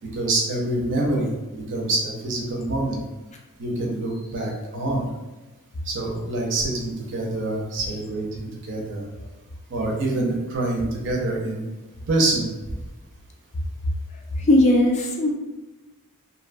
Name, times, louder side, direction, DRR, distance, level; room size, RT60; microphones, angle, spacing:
voice 1, 0.0-3.0 3.6-5.1 5.8-9.1 9.7-11.6 12.1-12.5, right 2 dB, 55° right, -1 dB, 0.6 m, -26 dB
voice 2, 14.4-15.3, left 1 dB, 30° left, 1 dB, 0.3 m, -18 dB
2.6 x 2.2 x 2.5 m, 1.1 s
head